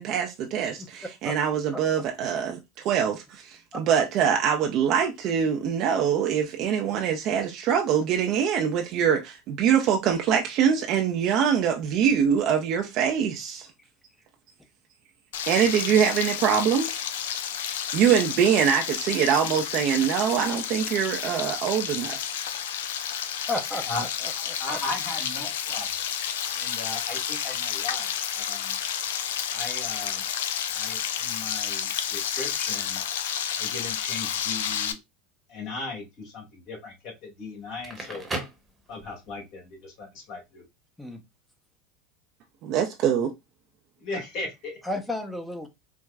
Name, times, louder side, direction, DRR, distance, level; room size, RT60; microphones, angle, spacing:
voice 1, 0.0-2.6 2.8-13.7 15.5-17.0 17.9-22.3 42.6-43.3, right 8 dB, 55° right, 0.5 m, -24 dB
Frying (food), 15.3-34.9, left 9 dB, 80° left, 0.4 m, -31 dB
voice 2, 23.5-24.3 24.7-24.8 41.0-41.2 44.8-45.7, left 1 dB, 5° left, 0.7 m, -32 dB
voice 3, 24.6-25.9 26.5-28.7 29.5-30.2 30.7-33.0 33.6-35.0 35.5-38.2 38.9-40.6 44.0-44.8, left 3 dB, 55° left, 1.8 m, -37 dB
Crackle, 37.6-39.4, right 2 dB, 20° right, 1.0 m, -36 dB
4.6 x 2.1 x 2.3 m
hypercardioid pair, 95°, 0 cm